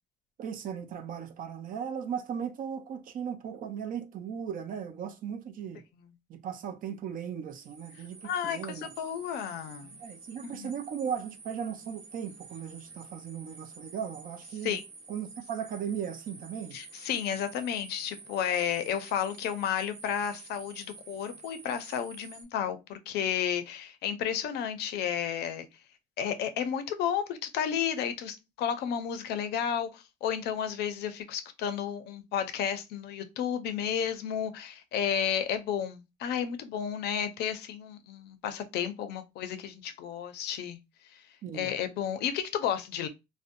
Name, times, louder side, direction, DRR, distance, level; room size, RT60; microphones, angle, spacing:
voice 1, 0.4-5.8 6.3-8.9 9.8-14.8 15.1-16.8 41.4-41.7, right 8 dB, 55° right, 0.5 m, -37 dB
sound 1, 7.5-22.4, right 4 dB, 70° right, 1.1 m, -50 dB
voice 2, 8.2-9.9 10.4-10.7 14.6-14.8 16.7-25.7 26.2-40.8 41.1-41.2 41.5-43.1, left 8 dB, 75° left, 0.5 m, -32 dB
2.6 x 2.1 x 2.5 m
cardioid pair, 110°, 17 cm